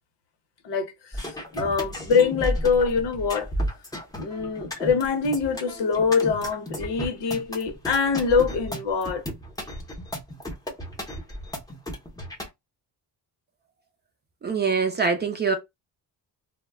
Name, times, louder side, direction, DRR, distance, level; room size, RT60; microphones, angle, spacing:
voice 1, 0.6-1.3 1.5-3.5 4.1-9.2, left 5 dB, 80° left, 0.9 m, -24 dB
sound 1, 1.1-12.5, equal, 10° left, 0.6 m, -33 dB
voice 2, 14.4-15.6, right 5 dB, 25° right, 0.4 m, -24 dB
2.2 x 2.0 x 3.3 m
wide cardioid pair, 180°, 41 cm